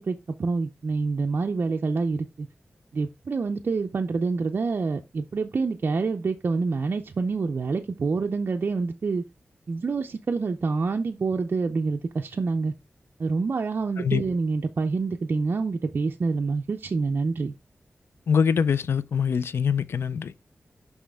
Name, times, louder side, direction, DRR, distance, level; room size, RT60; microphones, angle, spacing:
voice 1, 0.0-2.5 2.9-9.3 9.7-12.7 13.2-17.5, right 4 dB, 55° right, 0.5 m, -27 dB
voice 2, 18.3-20.3, left 6 dB, 90° left, 0.4 m, -24 dB
6.3 x 5.5 x 3.5 m
wide cardioid pair, 100°, 4 cm